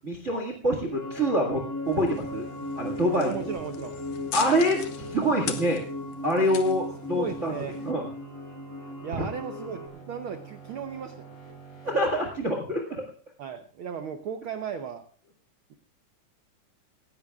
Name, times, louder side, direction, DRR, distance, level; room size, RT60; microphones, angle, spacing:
voice 1, 0.0-2.5 2.7-3.3 4.3-5.8 6.2-7.5 7.8-8.0 9.1-9.3 11.8-13.0, equal, 30° right, 2 dB, 1.7 m, -26 dB
sound 1, 0.9-9.9, left 2 dB, 15° left, 0.5 m, -38 dB
sound 2, 1.0-12.1, right 7 dB, 45° left, 4.7 m, -47 dB
sound 3, 1.9-7.9, left 9 dB, 65° left, 2.0 m, -41 dB
voice 2, 3.2-4.0 7.1-7.8 9.0-11.6 11.9-12.0 13.4-15.0, right 7 dB, 90° right, 7 dB, 1.1 m, -36 dB
18.0 x 16.0 x 2.4 m, 0.43 s
omnidirectional pair, 3.6 m